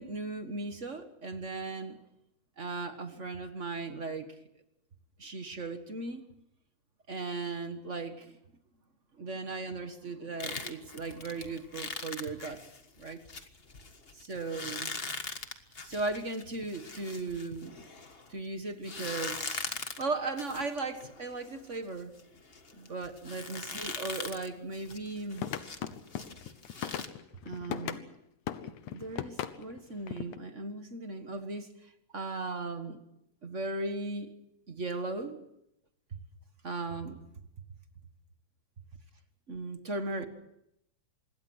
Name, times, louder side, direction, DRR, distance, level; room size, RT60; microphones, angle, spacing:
voice 1, 0.0-2.0 2.6-4.3 5.2-6.2 7.1-8.4 9.2-12.6 13.0-13.2 14.1-14.9 15.8-17.7 18.3-19.7 20.0-22.1 22.8-25.4 27.4-28.1 28.6-33.0 33.4-34.3 34.7-35.4 36.1-36.2 36.6-37.2 39.5-40.2, right 3 dB, 35° right, 8 dB, 1.3 m, -37 dB
sound 1, 10.4-18.3 18.8-27.1, left 4 dB, 30° left, 1.0 m, -41 dB
sound 2, 25.3-28.1 28.5-30.4, left 10 dB, 85° left, 2.5 m, -38 dB
26.5 x 21.5 x 6.3 m, 0.80 s
omnidirectional pair, 3.3 m